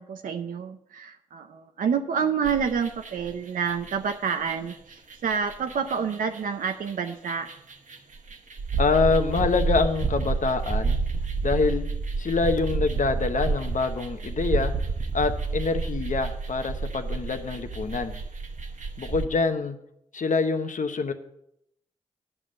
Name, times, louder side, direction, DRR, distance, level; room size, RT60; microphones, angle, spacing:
voice 1, 0.0-7.5, right 6 dB, 85° right, 5 dB, 0.6 m, -28 dB
sound 1, 2.4-3.3 3.7-19.2, right 4 dB, 65° right, 1.0 m, -30 dB
voice 2, 8.8-11.0 11.4-11.8 12.2-14.7 15.1-18.1 19.0-19.8 20.1-21.1, left 4 dB, 65° left, 7 dB, 1.0 m, -25 dB
9.6 x 5.5 x 7.6 m, 0.77 s
cardioid pair, 40°, 14 cm